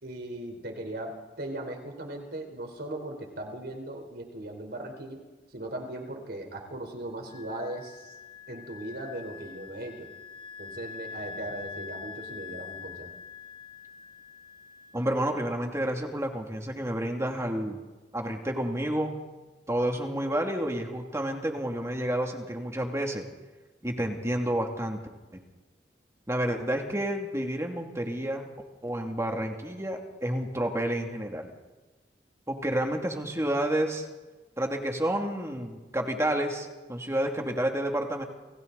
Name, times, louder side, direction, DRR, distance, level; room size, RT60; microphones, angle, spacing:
voice 1, 0.0-5.2 5.5-8.2 8.5-10.1 10.6-13.2, right 1 dB, 60° right, 3 dB, 4.3 m, -38 dB
Wind instrument woodwind instrument, 7.3-15.6, left 5 dB, 30° left, 1.2 m, -44 dB
voice 2, 14.9-17.8 18.1-19.1 19.7-23.3 23.8-25.0 26.3-28.5 28.8-31.5 32.5-34.1 34.6-38.2, right 1 dB, 15° right, 2 dB, 2.5 m, -30 dB
29.0 x 28.5 x 4.1 m, 1.2 s
head